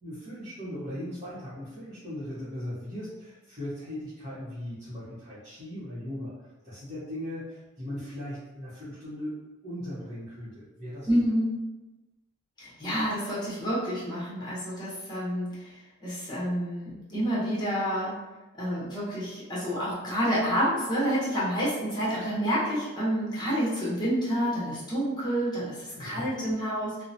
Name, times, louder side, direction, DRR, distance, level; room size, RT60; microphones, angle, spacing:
voice 1, 0.0-11.2 25.9-26.3, left 1 dB, 30° right, -14 dB, 0.9 m, -38 dB
voice 2, 11.1-11.5 12.6-15.7 16.0-18.1 18.6-27.0, equal, 20° left, -8 dB, 0.9 m, -28 dB
2.8 x 2.1 x 2.6 m, 1.1 s
head